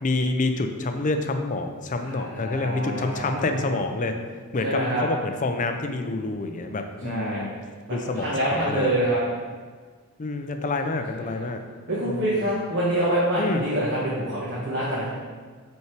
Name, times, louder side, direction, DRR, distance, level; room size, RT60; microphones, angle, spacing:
voice 1, 0.0-4.2 4.5-7.5 7.9-8.9 10.2-11.6 12.0-12.5 13.4-13.6, left 2 dB, 35° left, 6 dB, 0.5 m, -28 dB
voice 2, 2.0-3.7 4.6-5.0 7.0-7.4 7.9-9.2 11.2-11.3 11.9-15.1, right 1 dB, 50° right, -8 dB, 1.3 m, -26 dB
5.6 x 4.6 x 4.6 m, 1.5 s
head